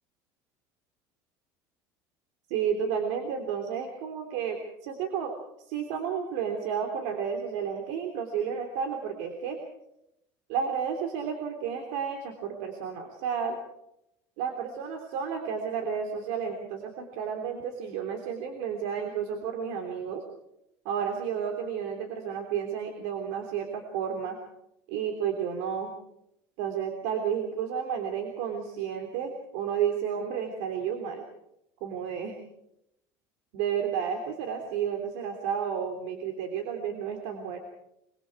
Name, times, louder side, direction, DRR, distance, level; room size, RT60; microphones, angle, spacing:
voice 1, 2.5-5.3 5.6-9.6 10.5-13.6 14.4-20.2 20.8-24.4 24.9-25.9 26.6-31.2 31.8-32.4 33.5-37.6, right 7 dB, 80° right, 4 dB, 3.2 m, -31 dB
24.5 x 24.0 x 4.7 m, 0.80 s
cardioid pair, 180°, 8 cm